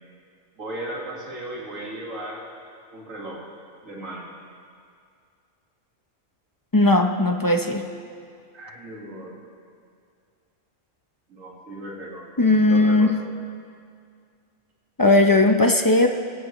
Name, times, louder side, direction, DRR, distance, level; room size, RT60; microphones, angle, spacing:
voice 1, 0.6-2.4 2.9-3.4 3.8-4.3 8.5-9.4 11.3-12.2 12.7-13.2, right 1 dB, 80° right, -3 dB, 2.3 m, -36 dB
voice 2, 6.7-7.8 12.4-13.1 15.0-16.1, left 2 dB, 20° left, 4 dB, 0.6 m, -17 dB
21.0 x 16.5 x 3.2 m, 2.2 s
omnidirectional pair, 1.4 m